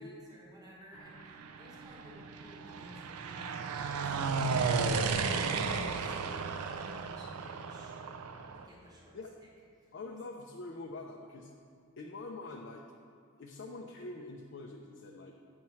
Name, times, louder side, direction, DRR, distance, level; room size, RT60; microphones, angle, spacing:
voice 1, 0.0-8.1 8.5-9.2, equal, 15° right, -5 dB, 0.9 m, -54 dB
sound 1, 1.2-8.7, right 4 dB, 85° right, 0.4 m, -34 dB
voice 2, 9.9-11.5 12.0-12.8 13.4-15.4, left 2 dB, 50° left, 1 dB, 0.4 m, -45 dB
8.3 x 3.1 x 5.6 m, 2.3 s
head